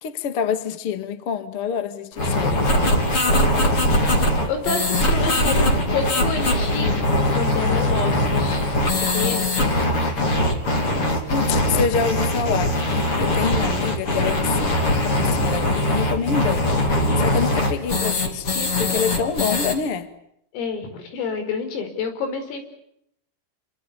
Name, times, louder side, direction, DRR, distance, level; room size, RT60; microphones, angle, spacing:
voice 1, 0.0-3.0 11.3-12.8 13.2-16.7 17.2-20.1, left 6 dB, 50° left, 1.8 m, -27 dB
sound 1, 2.2-19.7, left 1 dB, 30° left, 4.0 m, -21 dB
voice 2, 4.4-7.0 7.3-8.7 9.1-9.5 20.5-22.8, left 5 dB, 90° left, 7.5 m, -28 dB
28.5 x 25.5 x 7.0 m
omnidirectional pair, 5.8 m